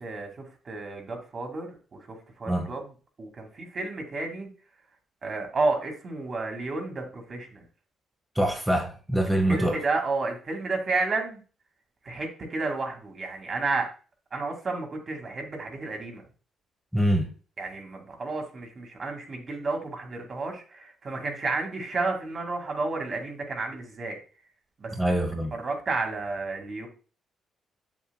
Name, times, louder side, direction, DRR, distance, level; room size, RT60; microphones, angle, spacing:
voice 1, 0.0-2.9 3.2-4.5 5.2-7.6 9.5-11.4 12.0-13.9 14.3-16.2 17.6-24.2 24.8-25.0 25.5-26.9, right 3 dB, 45° right, 2 dB, 2.2 m, -31 dB
voice 2, 8.3-9.8 16.9-17.3 25.0-25.5, right 1 dB, 5° right, 3 dB, 1.2 m, -24 dB
7.4 x 7.3 x 2.3 m, 0.37 s
cardioid pair, 90°, 0 cm